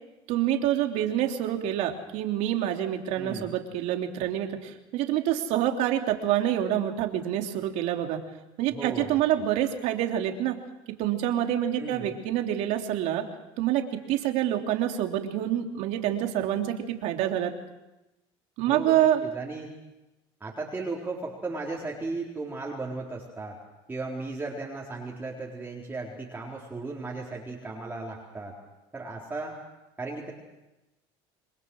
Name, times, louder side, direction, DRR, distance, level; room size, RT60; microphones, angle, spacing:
voice 1, 0.3-8.2 8.6-10.5 11.0-13.2 13.6-17.5 18.6-19.2, right 11 dB, 70° right, 3 dB, 3.2 m, -27 dB
voice 2, 3.2-3.5 8.7-9.2 11.8-12.1 18.7-19.7 20.4-23.6 23.9-28.5 28.9-29.5 30.0-30.3, right 3 dB, 15° right, -4 dB, 4.2 m, -36 dB
29.0 x 22.0 x 6.4 m, 0.99 s
supercardioid pair, 105°, 12 cm